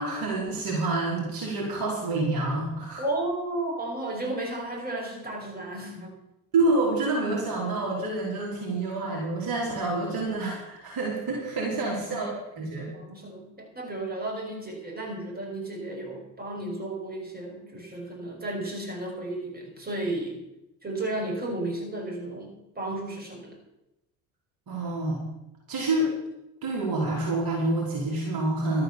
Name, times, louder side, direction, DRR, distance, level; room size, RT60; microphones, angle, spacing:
voice 1, 0.0-3.0 6.5-12.9 24.7-25.2 25.7-26.1 26.6-28.8, right 2 dB, 50° right, -3 dB, 4.7 m, -28 dB
voice 2, 3.0-6.1 11.6-12.3 12.9-20.4 20.8-23.6, right 2 dB, 20° right, -1 dB, 6.1 m, -33 dB
12.5 x 9.4 x 7.1 m, 0.87 s
figure-of-eight pair, 55°, 46 cm